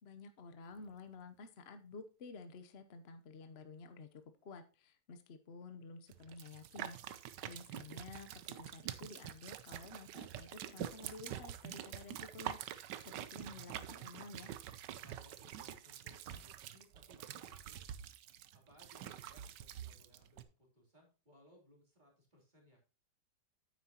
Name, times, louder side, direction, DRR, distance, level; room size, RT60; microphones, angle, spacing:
voice 1, 0.0-14.6, left 4 dB, 45° left, 9 dB, 0.9 m, -52 dB
sound 1, 6.1-20.4, right 10 dB, 75° right, 1.4 m, -46 dB
voice 2, 7.6-8.0 15.0-17.9 18.5-22.9, left 1 dB, 25° right, -1 dB, 3.4 m, -65 dB
9.4 x 8.6 x 2.9 m, 0.34 s
omnidirectional pair, 1.9 m